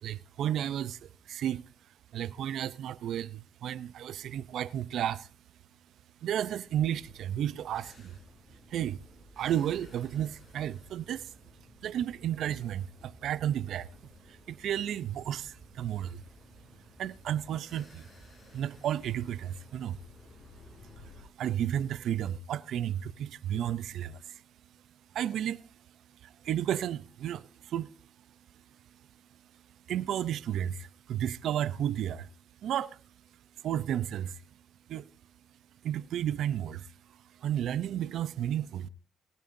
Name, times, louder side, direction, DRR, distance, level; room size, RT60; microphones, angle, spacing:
voice 1, 0.0-1.6 2.1-5.3 6.2-8.2 8.7-9.0 9.4-11.3 11.8-13.9 14.3-16.2 17.0-18.1 18.5-20.0 21.0-24.4 25.1-25.7 26.2-27.9 29.9-32.3 32.6-33.0 33.6-34.4 34.9-35.1 35.8-38.9, right 10 dB, 75° right, 0.6 m, -33 dB
sound 1, 6.7-21.2, left 1 dB, 35° left, 7.1 m, -55 dB
23.0 x 9.1 x 2.7 m
cardioid pair, 90°, 0 cm